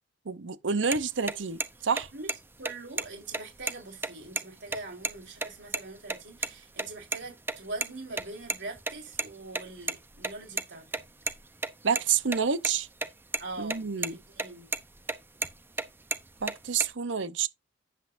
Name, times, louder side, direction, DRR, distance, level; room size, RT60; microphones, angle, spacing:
voice 1, 0.3-2.1 11.8-12.9 13.6-14.2 16.4-17.5, right 6 dB, 90° right, 0.8 m, -28 dB
sound 1, 0.9-1.0 1.3-1.4 1.6-1.7 2.0-2.4 2.7-2.8 3.0-3.1 3.3-4.4 4.7-4.8 5.0-5.2 5.4-5.8 6.1-6.5 6.8-7.9 8.1-10.6 10.9-12.7 13.0-13.1 13.3-13.8 14.0-14.5 14.7-15.8 16.1-16.9, right 3 dB, 10° right, 0.8 m, -31 dB
voice 2, 2.6-11.0 13.4-14.7, right 2 dB, 70° right, 4.5 m, -42 dB
9.9 x 7.9 x 2.6 m
head